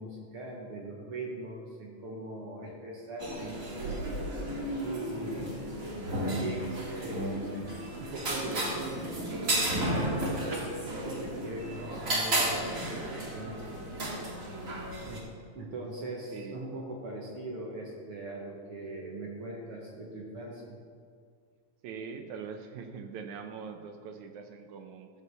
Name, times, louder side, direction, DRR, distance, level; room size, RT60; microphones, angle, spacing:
voice 1, 0.0-4.4 4.8-5.8 6.2-7.5 8.0-13.8 15.0-15.3 15.5-20.8, right 1 dB, 55° right, -2 dB, 2.0 m, -40 dB
sound 1, 3.2-15.2, right 1 dB, 30° right, 2.0 m, -33 dB
voice 2, 21.8-25.1, right 6 dB, 75° right, 5 dB, 2.2 m, -42 dB
14.5 x 6.9 x 6.8 m, 2.1 s
omnidirectional pair, 3.4 m